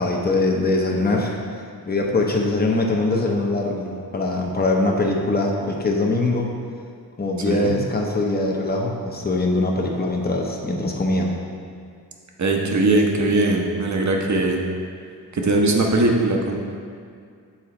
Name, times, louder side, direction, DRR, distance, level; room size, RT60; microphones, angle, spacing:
voice 1, 0.0-1.4 1.9-6.5 7.2-11.3, left 2 dB, 25° left, 0 dB, 0.9 m, -22 dB
voice 2, 7.5-7.8 12.4-14.6 15.3-16.6, right 2 dB, 45° right, 1 dB, 0.9 m, -20 dB
7.4 x 3.8 x 4.3 m, 2.3 s
wide cardioid pair, 85°, 39 cm